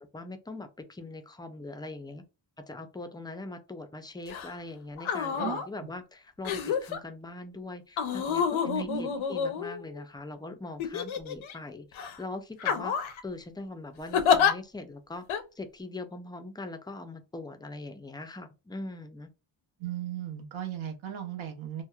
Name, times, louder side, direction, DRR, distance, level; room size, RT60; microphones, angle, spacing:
voice 1, 0.1-2.2 2.7-15.3 15.6-19.3, left 2 dB, 10° left, 0.3 m, -41 dB
sound 1, 4.3-4.5 5.0-5.7 6.4-7.0 8.0-10.0 10.8-11.5 12.0-12.2 12.6-13.2 14.1-14.5 15.3-15.4, left 7 dB, 75° left, 0.6 m, -28 dB
voice 2, 8.6-9.1 19.8-21.8, right 11 dB, 75° right, 0.8 m, -36 dB
2.9 x 2.0 x 2.3 m
cardioid pair, 95°, 48 cm